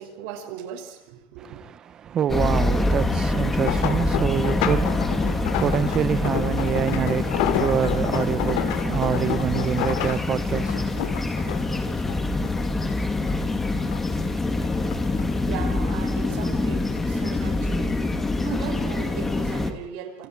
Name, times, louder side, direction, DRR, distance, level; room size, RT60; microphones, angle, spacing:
voice 1, 0.0-1.6 14.7-20.3, right 8 dB, 70° right, 6.2 m, -38 dB
voice 2, 1.4-11.6, right 9 dB, 30° right, 0.8 m, -27 dB
sound 1, 2.3-19.7, left 2 dB, 10° left, 2.5 m, -25 dB
sound 2, 3.3-12.9 13.3-14.2 14.6-16.0 16.7-17.0 17.4-17.5, left 11 dB, 75° left, 2.6 m, -30 dB
28.5 x 27.5 x 4.8 m
cardioid pair, 160°, 2 cm